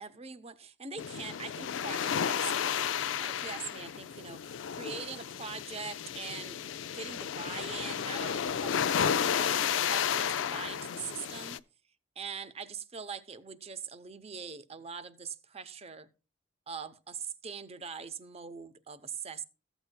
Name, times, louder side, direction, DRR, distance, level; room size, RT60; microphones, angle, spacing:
voice 1, 0.0-11.6 12.2-16.1 16.7-19.4, right 6 dB, 35° right, 0.7 m, -43 dB
sound 1, 1.0-11.6, left 8 dB, 90° left, 0.4 m, -32 dB
14.5 x 8.0 x 2.2 m
head